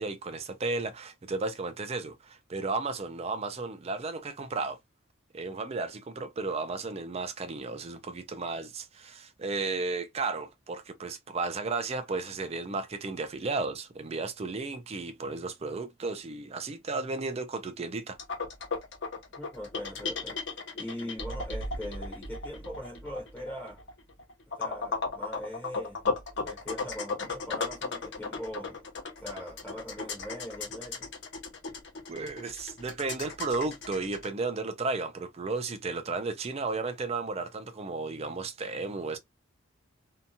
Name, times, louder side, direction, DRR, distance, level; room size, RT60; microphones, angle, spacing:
voice 1, 0.0-4.8 5.3-18.2 32.1-39.2, right 3 dB, 30° right, 0.4 m, -34 dB
sound 1, 18.2-34.3, left 4 dB, 60° left, 0.8 m, -35 dB
voice 2, 19.4-23.8 24.6-26.0 26.4-28.8 29.2-31.1, left 1 dB, 10° left, 0.8 m, -41 dB
2.8 x 2.3 x 2.6 m
head